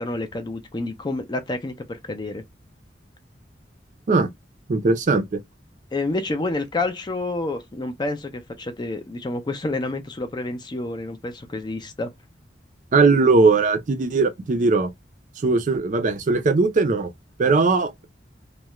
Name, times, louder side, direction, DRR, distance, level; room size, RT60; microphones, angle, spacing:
voice 1, 0.0-2.4 5.9-12.1, left 2 dB, 25° left, 0.4 m, -29 dB
voice 2, 4.7-5.4 12.9-14.9 15.4-17.1 17.4-18.0, right 3 dB, 45° right, 0.4 m, -19 dB
2.3 x 2.1 x 2.8 m
head